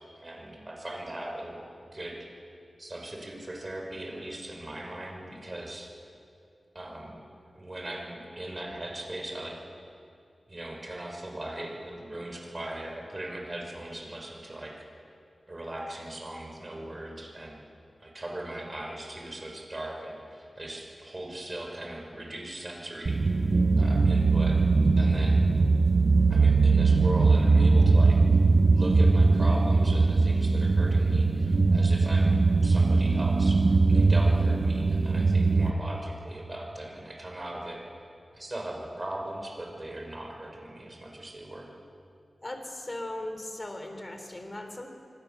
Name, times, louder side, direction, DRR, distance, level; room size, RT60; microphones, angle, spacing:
voice 1, 0.1-1.6 1.9-2.2 2.8-5.9 6.7-7.2 7.5-9.5 10.5-14.9 15.5-17.6 18.0-23.5 23.8-24.6 25.0-25.4 26.3-28.2 28.7-33.6 33.9-37.8 38.3-41.7, right 1 dB, 35° right, 0 dB, 5.6 m, -39 dB
sound 1, 23.1-35.7, right 3 dB, 60° right, 1.0 m, -21 dB
voice 2, 42.4-44.9, left 1 dB, 35° left, 5 dB, 3.5 m, -38 dB
24.0 x 18.5 x 7.0 m, 2.5 s
cardioid pair, 50°, 0 cm